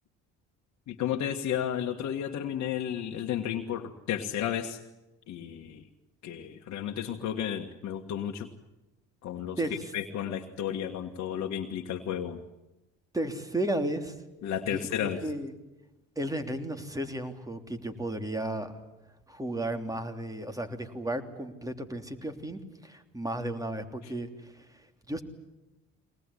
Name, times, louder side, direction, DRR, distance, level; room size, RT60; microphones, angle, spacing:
voice 1, 0.9-4.8 5.3-5.9 6.2-8.5 9.2-9.6 9.9-12.4 14.4-15.2, left 9 dB, 60° left, 3 dB, 1.7 m, -33 dB
voice 2, 13.1-14.1 14.7-15.5 16.1-18.7 19.3-25.2, right 1 dB, 10° right, 7 dB, 3.2 m, -34 dB
23.0 x 19.5 x 9.9 m, 1.0 s
supercardioid pair, 70°, 31 cm